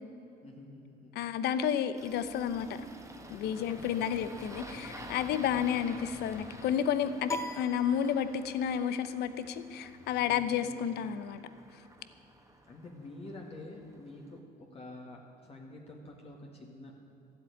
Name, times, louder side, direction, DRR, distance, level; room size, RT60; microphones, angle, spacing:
voice 1, 0.4-1.3 3.4-3.9 5.3-5.5 10.2-11.2 12.7-16.9, left 2 dB, 35° left, -1 dB, 1.9 m, -48 dB
voice 2, 1.1-2.7 3.3-11.4, left 9 dB, 75° left, 12 dB, 0.8 m, -31 dB
Engine starting, 1.9-14.4, right 1 dB, 15° right, 1.5 m, -51 dB
sound 1, 2.6-7.1, left 3 dB, 55° left, 2.1 m, -51 dB
sound 2, 7.3-8.7, left 1 dB, 15° left, 0.6 m, -40 dB
13.0 x 7.7 x 9.3 m, 2.7 s
cardioid pair, 110°, 17 cm